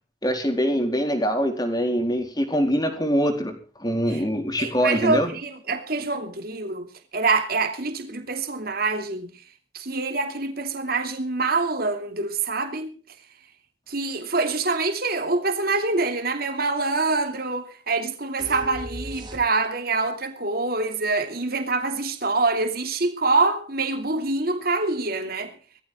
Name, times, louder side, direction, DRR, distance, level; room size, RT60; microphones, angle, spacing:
voice 1, 0.2-5.3, equal, 20° left, 4.1 m, -24 dB
voice 2, 4.6-9.3 9.7-12.9 13.9-25.5, right 3 dB, 55° right, 2.8 m, -25 dB
sound 1, 18.4-19.9, equal, 25° right, 3.9 m, -37 dB
19.5 x 15.0 x 3.8 m
head